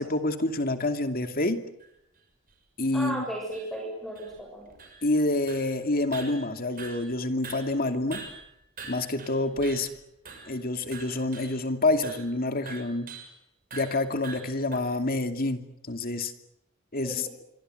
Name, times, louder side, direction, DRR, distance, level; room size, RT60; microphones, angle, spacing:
voice 1, 0.0-1.6 2.8-3.3 5.0-8.2 8.8-9.9 10.5-13.1 13.7-15.6 15.9-16.3 16.9-17.3, left 2 dB, 45° left, 7 dB, 2.6 m, -27 dB
sound 1, 1.2-1.3 1.8-1.9 2.5-2.6 2.8-2.9 3.5-3.7 4.1-5.2 5.5-5.8 6.1-7.2 7.4-9.9 10.2-10.6 10.9-11.6 12.0-12.3 12.7-13.3 13.7-14.8, right 5 dB, 45° right, 6.5 m, -44 dB
voice 2, 2.9-4.8 17.0-17.3, right 1 dB, ahead, 0 dB, 7.1 m, -35 dB
26.5 x 24.0 x 7.9 m, 0.80 s
head